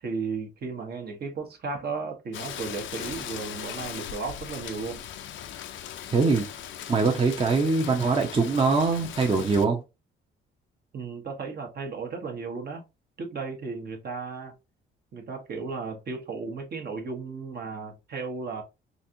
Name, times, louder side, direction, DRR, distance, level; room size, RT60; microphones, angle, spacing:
voice 1, 0.0-5.0 10.9-12.8 13.2-14.5 15.1-18.6, right 4 dB, 50° right, 1.1 m, -35 dB
Rain, 2.3-9.6, left 10 dB, 75° left, 0.5 m, -39 dB
voice 2, 6.1-9.8, right 4 dB, 25° right, 0.7 m, -23 dB
4.0 x 2.5 x 2.8 m
cardioid pair, 90°, 20 cm